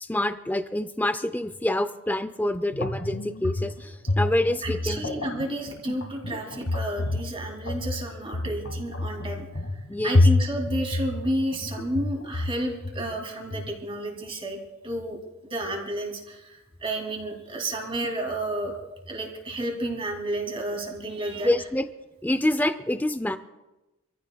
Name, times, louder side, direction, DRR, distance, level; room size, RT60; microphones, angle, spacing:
voice 1, 0.0-5.3 9.9-10.3 21.4-21.9 22.2-23.4, left 1 dB, 10° left, 11 dB, 0.5 m, -27 dB
sound 1, 2.7-13.7, left 2 dB, 75° left, 2.1 m, -28 dB
voice 2, 4.6-9.5 10.0-14.6 14.8-15.2 15.4-18.7 19.1-21.5, right 1 dB, 25° right, 1 dB, 2.8 m, -31 dB
27.0 x 15.0 x 2.3 m, 1.0 s
head